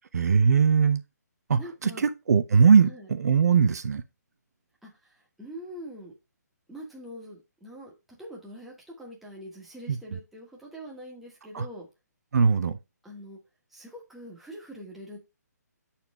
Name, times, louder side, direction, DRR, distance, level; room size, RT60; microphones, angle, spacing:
voice 1, 0.1-1.0 1.5-4.0 9.9-10.0 11.5-11.6 12.3-12.8, right 6 dB, 65° right, 0.9 m, -21 dB
voice 2, 1.6-2.0 2.8-3.1 4.8-6.1 6.7-11.9 13.0-13.4 13.7-15.2, equal, ahead, 1.4 m, -44 dB
7.6 x 4.3 x 3.6 m
hypercardioid pair, 160°, 9 cm